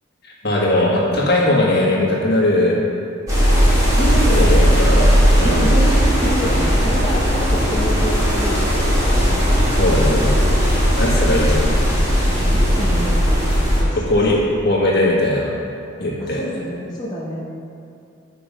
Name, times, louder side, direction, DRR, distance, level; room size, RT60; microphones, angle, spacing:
voice 1, 0.2-2.8 4.4-5.1 5.4-5.7 9.7-10.4 11.0-11.8 14.1-14.4 14.6-15.5 16.0-16.4, left 1 dB, 50° left, -4 dB, 1.7 m, -19 dB
sound 1, 3.3-13.8, equal, 15° right, 2.2 m, -16 dB
voice 2, 4.0-4.4 5.4-8.8 12.3-13.5 13.8-14.0 16.2-17.5, equal, 20° left, -8 dB, 0.9 m, -26 dB
9.3 x 5.8 x 5.3 m, 2.5 s
head